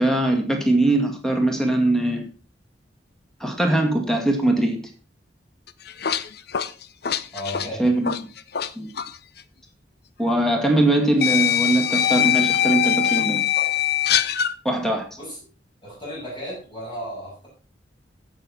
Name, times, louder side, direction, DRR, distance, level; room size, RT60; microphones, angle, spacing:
voice 1, 0.0-2.2 3.4-4.8 7.8-8.1 8.8-8.9 10.2-13.4 14.6-15.1, right 1 dB, 5° left, 3 dB, 2.2 m, -21 dB
sound 1, 5.7-8.7 9.0-9.2 10.3-10.4 11.2-14.5, left 10 dB, 60° left, 0.7 m, -22 dB
voice 2, 7.3-7.9 15.2-15.4 15.8-17.5, equal, 30° left, -6 dB, 7.2 m, -34 dB
16.0 x 6.4 x 4.3 m, 0.36 s
head